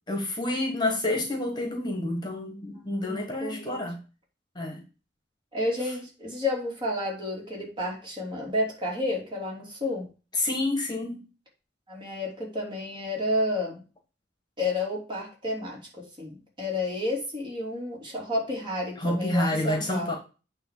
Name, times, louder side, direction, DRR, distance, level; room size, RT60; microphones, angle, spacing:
voice 1, 0.1-4.0 4.5-4.8 10.3-11.2 19.0-20.2, left 1 dB, 25° left, 2 dB, 1.5 m, -28 dB
voice 2, 2.7-3.8 5.5-10.1 11.9-13.8 14.6-20.2, left 1 dB, 25° right, -2 dB, 3.0 m, -31 dB
9.0 x 3.2 x 6.7 m, 0.34 s
head